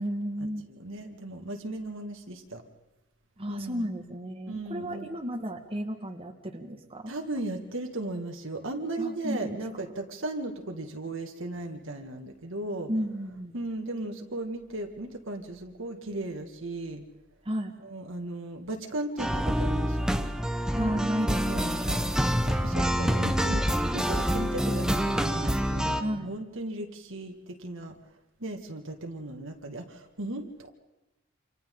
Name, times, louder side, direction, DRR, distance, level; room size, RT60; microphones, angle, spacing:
voice 1, 0.0-0.7 3.4-7.1 9.0-9.6 12.9-13.5 17.5-17.7 20.7-22.1 26.0-26.3, equal, 30° right, 2 dB, 1.7 m, -33 dB
voice 2, 0.7-2.6 3.5-3.9 4.5-5.1 7.1-12.9 13.5-17.0 17.8-20.3 21.5-28.0 28.4-30.7, right 2 dB, 65° right, 3 dB, 2.1 m, -36 dB
sound 1, 19.2-26.0, equal, 5° right, 1.0 m, -27 dB
29.0 x 27.0 x 3.9 m, 1.0 s
head